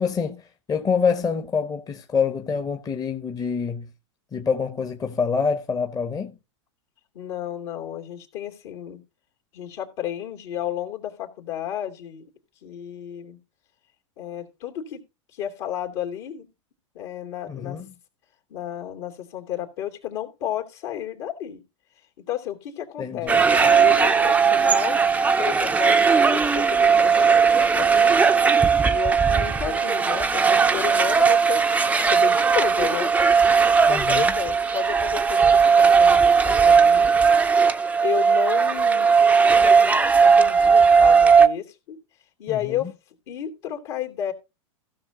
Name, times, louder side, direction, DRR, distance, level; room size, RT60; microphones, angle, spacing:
voice 1, 0.0-3.9 4.3-6.4 17.5-17.9 23.0-23.4 33.9-34.3 42.5-42.9, left 6 dB, 25° left, 1.1 m, -26 dB
voice 2, 7.1-9.0 9.5-12.2 12.6-13.4 14.2-15.0 15.3-16.5 16.9-17.8 18.5-21.6 22.3-25.0 25.4-28.2 28.8-31.6 32.1-33.1 33.9-37.1 38.0-39.1 39.4-42.0 42.4-42.9 43.3-44.3, left 11 dB, 60° left, 2.8 m, -32 dB
sound 1, 23.3-41.5, right 5 dB, 10° right, 0.6 m, -18 dB
15.5 x 6.0 x 3.9 m
hypercardioid pair, 105°, 16 cm